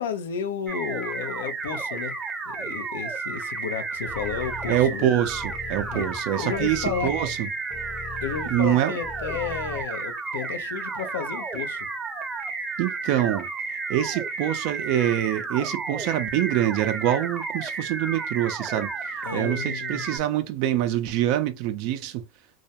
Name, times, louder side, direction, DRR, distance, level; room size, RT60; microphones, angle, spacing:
voice 1, 0.0-2.1 2.5-5.1 5.9-6.1 6.4-7.1 8.2-11.9 19.2-20.1, left 7 dB, 90° left, 0.5 m, -32 dB
sound 1, 0.7-20.2, right 4 dB, 20° right, 0.6 m, -32 dB
sound 2, 4.1-9.8, left 5 dB, 25° left, 0.5 m, -40 dB
voice 2, 4.7-7.5 8.5-8.9 12.8-22.2, right 12 dB, 65° right, 0.4 m, -25 dB
2.3 x 2.1 x 2.8 m
hypercardioid pair, 105°, 0 cm